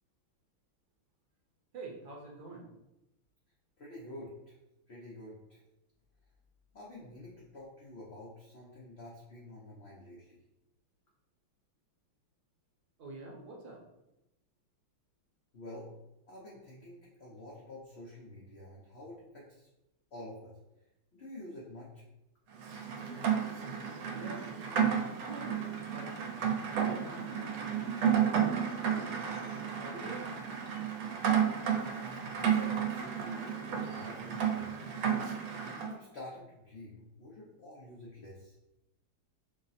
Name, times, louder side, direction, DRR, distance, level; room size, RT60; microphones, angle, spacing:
voice 1, 1.7-2.7 13.0-13.8 24.1-24.5 25.2-26.4 26.6-29.3 29.8-30.4, right 2 dB, 60° right, -1 dB, 1.2 m, -47 dB
voice 2, 3.8-4.6 4.9-5.6 6.7-10.4 15.5-15.9 16.3-19.7 20.1-20.6 21.1-22.0 31.7-34.9 35.8-38.6, left 1 dB, 75° left, -5 dB, 0.5 m, -49 dB
Rain, 22.6-35.9, right 8 dB, 80° right, 1.4 m, -32 dB
5.0 x 2.0 x 4.0 m, 0.93 s
omnidirectional pair, 2.2 m